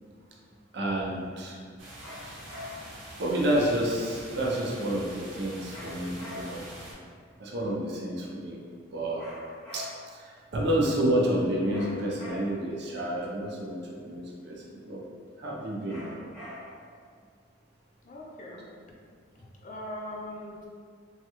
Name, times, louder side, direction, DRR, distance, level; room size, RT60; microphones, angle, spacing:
voice 1, 0.7-1.6 3.2-6.7 7.4-8.6 8.9-9.2 9.7-9.8 10.1-15.0 15.4-16.2, right 1 dB, 60° right, -3 dB, 0.5 m, -29 dB
sound 1, 1.8-6.9, right 1 dB, 85° right, 0.8 m, -45 dB
sound 2, 2.0-3.0 5.7-6.8 9.2-10.2 11.7-12.8 15.9-16.9, left 2 dB, 5° left, 0.8 m, -44 dB
voice 2, 18.0-18.7 19.4-20.7, left 1 dB, 40° left, -2 dB, 0.4 m, -40 dB
3.2 x 2.3 x 2.9 m, 2.1 s
head